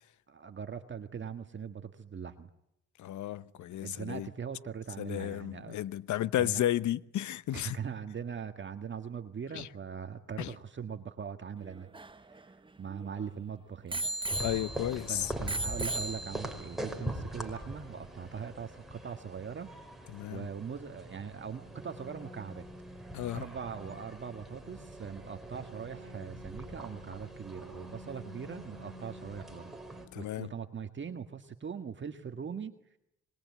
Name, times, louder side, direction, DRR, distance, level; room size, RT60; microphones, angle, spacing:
voice 1, 0.3-2.5 3.8-5.8 6.4-6.6 7.5-11.9 12.8-14.1 15.1-19.7 20.3-22.7 23.3-29.7 30.1-32.7, right 7 dB, 40° right, 1.7 m, -41 dB
voice 2, 3.0-4.3 5.0-7.8 9.5-9.7 10.4-10.5 14.4-15.3 20.1-20.5 23.1-23.4 30.1-30.5, left 12 dB, 70° left, 1.0 m, -33 dB
Bicycle bell, 11.6-13.3 13.9-15.0 15.5-16.7 17.4-17.5, right 2 dB, 15° right, 1.1 m, -37 dB
sound 1, 14.3-30.1, right 1 dB, ahead, 5.3 m, -43 dB
27.0 x 21.0 x 9.6 m
cardioid pair, 90°, 30 cm